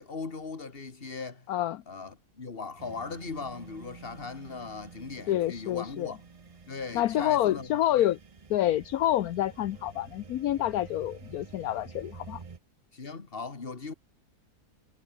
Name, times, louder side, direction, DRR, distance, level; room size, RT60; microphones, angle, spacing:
voice 1, 0.0-1.5 1.9-6.2 6.7-8.1 12.9-13.9, left 4 dB, 35° left, 2.2 m, -39 dB
voice 2, 1.5-1.8 5.3-6.1 6.9-8.2 8.5-12.4, left 13 dB, 70° left, 1.2 m, -28 dB
sound 1, 2.8-12.6, right 5 dB, 30° right, 0.7 m, -49 dB
omnidirectional pair, 1.7 m